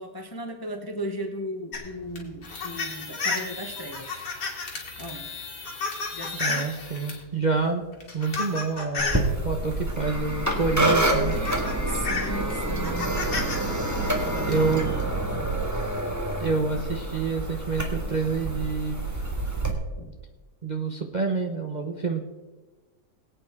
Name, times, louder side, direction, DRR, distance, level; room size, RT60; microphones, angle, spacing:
voice 1, 0.0-4.3 5.0-5.3 6.1-6.7 11.9-13.2 14.2-15.8 20.0-20.2, right 1 dB, 20° left, 4 dB, 0.6 m, -37 dB
sound 1, 1.7-7.2 7.9-9.3 10.5-10.6 11.0-13.6 13.9-14.5, left 4 dB, 65° left, 2.5 m, -32 dB
voice 2, 6.4-7.9 8.1-11.3 14.5-14.9 16.4-19.0 20.6-22.2, right 4 dB, 35° right, 2 dB, 0.7 m, -27 dB
sound 2, 9.0-19.7, right 1 dB, 10° right, 1.6 m, -27 dB
22.0 x 8.6 x 3.6 m, 1.2 s
omnidirectional pair, 1.8 m